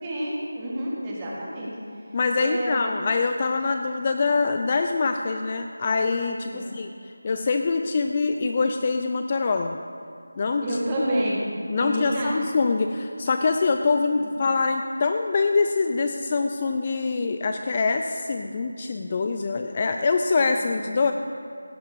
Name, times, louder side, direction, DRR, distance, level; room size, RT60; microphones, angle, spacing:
voice 1, 0.0-1.7 2.4-2.7 6.4-6.6 10.6-11.4 11.7-12.3 20.6-20.7, equal, 15° right, -5 dB, 1.9 m, -28 dB
voice 2, 2.1-6.9 7.2-9.8 10.4-10.8 11.7-21.1, left 4 dB, 25° left, 6 dB, 0.4 m, -24 dB
16.5 x 9.1 x 4.7 m, 2.4 s
figure-of-eight pair, 170°, 0 cm